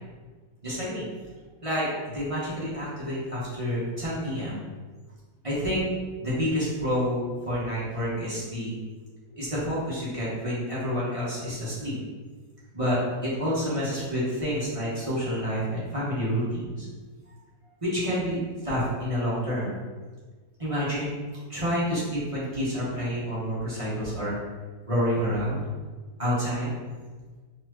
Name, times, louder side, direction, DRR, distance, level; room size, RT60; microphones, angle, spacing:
voice 1, 0.6-1.0 1.6-4.6 5.4-5.8 6.2-8.7 9.3-12.0 12.7-16.9 17.8-18.4 18.6-19.7 20.6-21.1 21.5-24.4 24.9-25.6 26.2-26.7, equal, 20° right, -9 dB, 1.2 m, -28 dB
4.1 x 3.2 x 3.0 m, 1.4 s
omnidirectional pair, 1.8 m